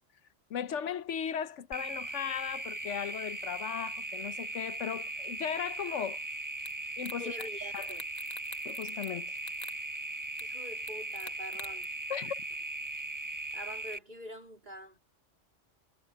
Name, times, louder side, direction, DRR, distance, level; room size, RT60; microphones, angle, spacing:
voice 1, 0.5-6.2 7.0-7.5 7.7-7.8 8.6-9.3 12.1-12.4, left 8 dB, 85° left, 1.1 m, -37 dB
sound 1, 1.7-14.0, right 2 dB, 15° right, 1.4 m, -39 dB
sound 2, 6.7-6.8 7.0-7.5 7.8-9.1 9.4-9.8 10.4-10.5 10.9-11.8, left 4 dB, 35° left, 1.1 m, -46 dB
voice 2, 7.2-8.1 10.4-12.0 13.5-15.0, equal, 40° right, 4.3 m, -45 dB
omnidirectional pair, 1.2 m